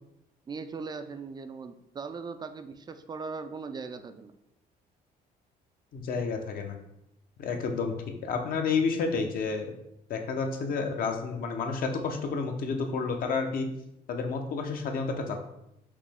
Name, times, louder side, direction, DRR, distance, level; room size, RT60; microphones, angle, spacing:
voice 1, 0.5-4.3, right 4 dB, 25° right, 9 dB, 0.3 m, -39 dB
voice 2, 5.9-6.8 7.4-7.9 8.2-9.7 10.1-13.7 14.1-15.4, left 4 dB, 60° left, 4 dB, 0.8 m, -30 dB
5.0 x 3.0 x 3.4 m, 0.82 s
cardioid pair, 110°, 17 cm